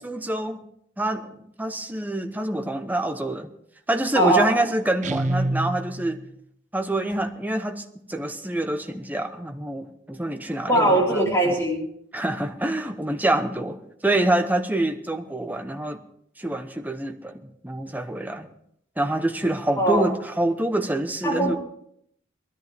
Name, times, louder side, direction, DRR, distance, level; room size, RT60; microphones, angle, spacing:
voice 1, 0.0-0.6 1.0-3.5 3.9-6.2 6.7-10.8 11.1-11.2 12.1-16.0 16.4-18.5 19.0-21.6, right 1 dB, 10° right, 6 dB, 1.0 m, -26 dB
Guitar, 5.0-6.3, right 1 dB, 40° right, 0.7 m, -27 dB
voice 2, 10.7-11.9 19.8-20.0 21.2-21.6, right 1 dB, 15° left, -4 dB, 3.8 m, -20 dB
20.5 x 13.5 x 3.5 m, 0.71 s
head